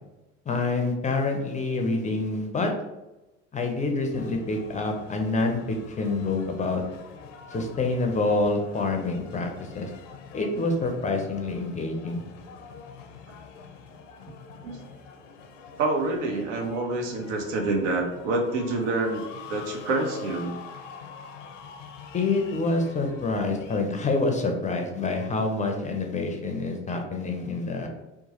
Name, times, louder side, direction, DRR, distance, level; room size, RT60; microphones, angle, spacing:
voice 1, 0.5-2.7 3.5-6.8 7.5-9.9 10.3-12.2 22.1-27.9, left 3 dB, 20° left, 3 dB, 0.4 m, -27 dB
sound 1, 4.1-23.8, left 5 dB, 85° left, 0.5 m, -45 dB
voice 2, 15.8-20.5 23.5-23.6, right 2 dB, 75° right, 3 dB, 0.7 m, -27 dB
2.9 x 2.2 x 2.8 m, 1.0 s
hypercardioid pair, 75°, 37 cm